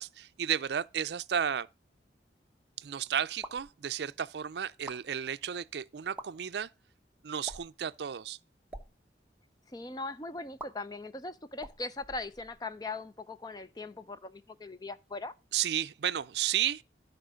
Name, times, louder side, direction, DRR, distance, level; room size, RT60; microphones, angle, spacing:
voice 1, 0.0-1.7 2.8-6.7 7.2-8.4 15.5-16.8, right 9 dB, 70° right, 0.4 m, -33 dB
sound 1, 3.4-3.7 4.7-5.0 6.0-6.3 7.4-7.8 8.6-8.9 10.6-10.7 11.6-12.7, right 1 dB, 10° right, 0.8 m, -45 dB
voice 2, 9.7-15.3, left 3 dB, 20° left, 0.5 m, -40 dB
12.5 x 4.5 x 6.3 m
head